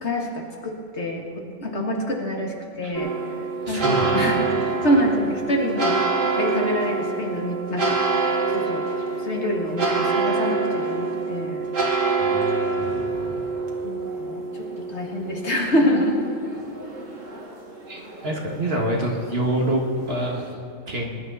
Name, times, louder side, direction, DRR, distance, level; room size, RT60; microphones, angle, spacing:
voice 1, 0.0-3.1 3.7-6.0 6.4-8.0 8.5-8.8 9.2-11.7 13.8-16.2, equal, 55° left, 0 dB, 2.0 m, -26 dB
sound 1, 2.9-20.5, right 4 dB, 65° right, 2.1 m, -26 dB
voice 2, 3.7-4.5 12.2-13.4 17.9-19.8 20.1-20.4 20.9-21.2, right 1 dB, 45° right, -1 dB, 2.1 m, -27 dB
21.5 x 11.0 x 4.1 m, 2.6 s
omnidirectional pair, 1.4 m